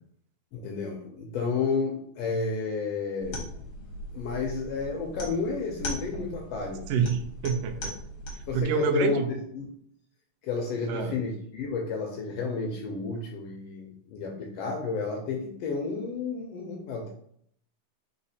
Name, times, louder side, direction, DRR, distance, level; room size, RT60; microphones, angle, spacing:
voice 1, 0.5-3.4 4.1-6.8 8.5-9.7 10.4-17.1, left 4 dB, 80° left, 1 dB, 1.5 m, -31 dB
sound 1, 3.2-8.6, equal, 60° left, 1.4 m, -39 dB
voice 2, 6.9-7.9 8.5-9.3 10.9-11.2, right 6 dB, 85° right, 6 dB, 1.4 m, -27 dB
4.1 x 4.1 x 2.7 m, 0.67 s
omnidirectional pair, 3.4 m